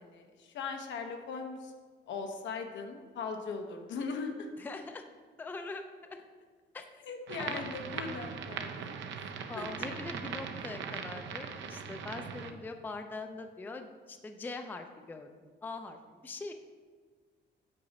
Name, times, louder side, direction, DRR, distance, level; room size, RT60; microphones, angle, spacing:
voice 1, 0.0-1.7 2.1-4.5 7.0-9.1 9.5-9.6, left 4 dB, 80° left, 5 dB, 0.9 m, -39 dB
voice 2, 4.6-5.0 5.4-6.2 6.7-6.9 7.4-7.6 9.5-15.3 15.6-16.5, left 3 dB, 10° left, 6 dB, 0.3 m, -42 dB
sound 1, 7.3-12.5, right 6 dB, 85° right, 0.6 m, -40 dB
8.5 x 4.9 x 4.0 m, 1.5 s
cardioid pair, 165°, 19 cm